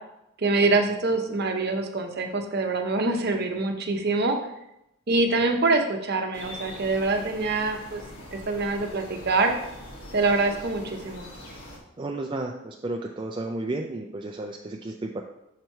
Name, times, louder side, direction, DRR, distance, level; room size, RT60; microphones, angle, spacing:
voice 1, 0.4-4.4 5.1-8.0 8.3-9.5 10.1-11.3, right 3 dB, 45° right, 4 dB, 0.8 m, -25 dB
sound 1, 6.3-11.8, equal, 65° left, 1.6 m, -42 dB
voice 2, 12.0-15.2, right 2 dB, 20° right, 1 dB, 0.3 m, -32 dB
6.7 x 4.5 x 4.5 m, 0.84 s
head